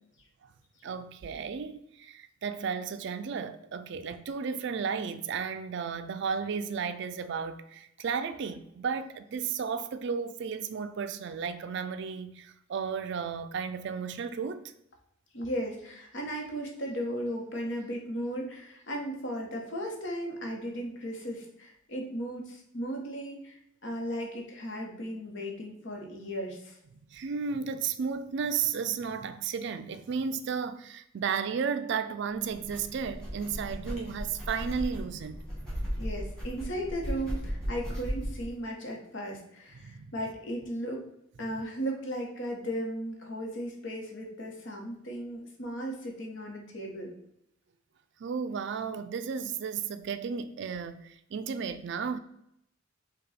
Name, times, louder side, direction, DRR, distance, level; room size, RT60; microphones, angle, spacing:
voice 1, 0.8-14.6 27.1-35.4 39.7-40.1 48.2-52.2, right 6 dB, 60° right, 0.4 m, -33 dB
voice 2, 15.3-26.8 36.0-41.0 41.4-47.1, equal, 65° left, 1.1 m, -36 dB
sound 1, 32.4-38.5, equal, 5° left, 1.5 m, -36 dB
5.2 x 2.3 x 4.1 m
head